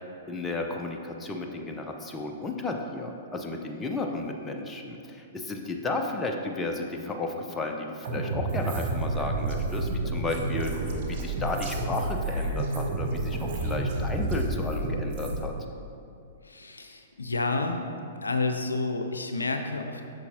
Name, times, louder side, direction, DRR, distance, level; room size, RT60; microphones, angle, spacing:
voice 1, 0.3-10.8 11.1-15.5, left 2 dB, 15° left, 2 dB, 0.6 m, -33 dB
sound 1, 8.0-15.4, right 2 dB, 50° right, 1.0 m, -30 dB
voice 2, 16.4-17.9 18.2-20.0, left 3 dB, 80° left, 6 dB, 0.5 m, -30 dB
8.2 x 6.4 x 2.8 m, 2.6 s
figure-of-eight pair, 110°, 0 cm